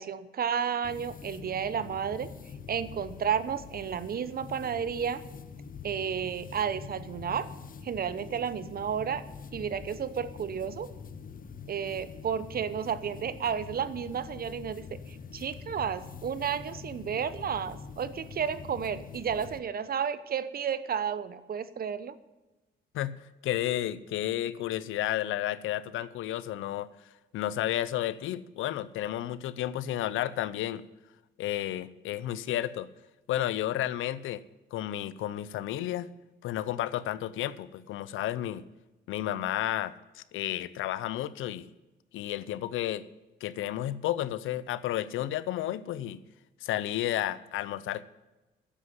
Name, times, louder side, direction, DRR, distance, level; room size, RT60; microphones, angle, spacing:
voice 1, 0.0-2.3 2.7-5.2 5.8-7.5 7.8-9.2 9.5-10.9 11.7-22.2, right 7 dB, 50° right, 15 dB, 0.9 m, -32 dB
sound 1, 0.8-19.6, left 6 dB, 45° left, 1.0 m, -45 dB
voice 2, 22.9-26.9 27.3-30.8 31.4-32.9 33.3-34.4 34.7-36.1 36.4-38.6 39.1-41.7 42.1-43.0 43.4-46.2 46.6-48.0, left 13 dB, 80° left, 17 dB, 0.7 m, -32 dB
10.0 x 7.5 x 9.5 m, 1.1 s
cardioid pair, 90°, 20 cm